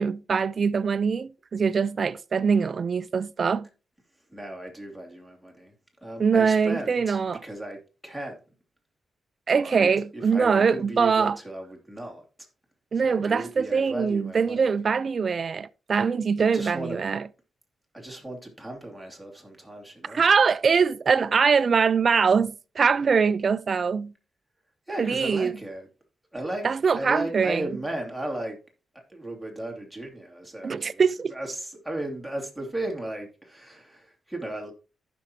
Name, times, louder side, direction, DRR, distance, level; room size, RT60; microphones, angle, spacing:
voice 1, 0.0-3.7 6.2-7.4 9.5-11.4 12.9-17.2 20.1-24.1 25.0-25.6 26.6-27.7 30.6-31.3, right 5 dB, 50° right, 0.4 m, -23 dB
voice 2, 4.3-5.7 6.0-8.4 9.6-12.2 12.9-14.8 16.5-17.0 17.9-20.2 24.9-25.9 26.3-26.7 26.9-28.6 28.9-31.0 31.3-34.7, right 1 dB, ahead, 2.6 m, -36 dB
14.5 x 6.0 x 2.8 m
cardioid pair, 95°, 0 cm